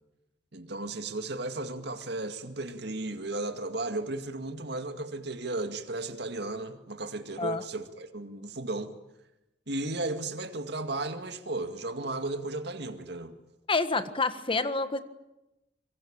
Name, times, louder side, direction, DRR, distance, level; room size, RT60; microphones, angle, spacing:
voice 1, 0.5-8.9 9.7-13.3, right 2 dB, 70° right, 2.2 m, -35 dB
voice 2, 13.7-15.0, left 3 dB, 30° left, 1.6 m, -28 dB
25.5 x 23.0 x 8.9 m
head